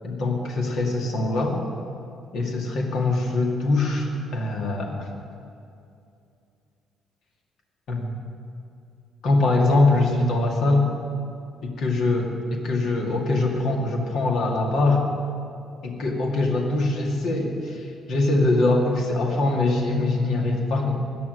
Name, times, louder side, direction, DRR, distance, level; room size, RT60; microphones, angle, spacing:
voice 1, 0.0-1.6 2.3-5.1 7.9-8.2 9.2-10.8 11.6-12.3 12.6-15.0 15.8-20.9, left 2 dB, 55° left, 1 dB, 2.1 m, -23 dB
17.0 x 11.5 x 6.4 m, 2.5 s
figure-of-eight pair, 45°, 0 cm